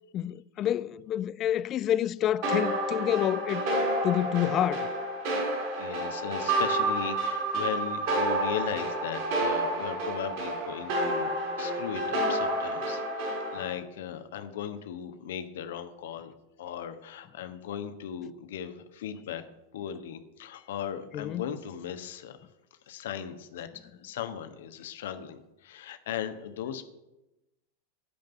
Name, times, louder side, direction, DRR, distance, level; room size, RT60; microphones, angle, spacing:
voice 1, 0.1-3.7 4.0-4.9 21.1-21.4, left 11 dB, 30° left, 0.4 m, -28 dB
sound 1, 2.4-13.7, right 1 dB, 50° right, 4.2 m, -29 dB
voice 2, 5.3-19.4 19.7-22.5 22.9-26.8, left 9 dB, 55° left, 1.2 m, -38 dB
15.5 x 5.2 x 9.2 m
figure-of-eight pair, 90°, 0 cm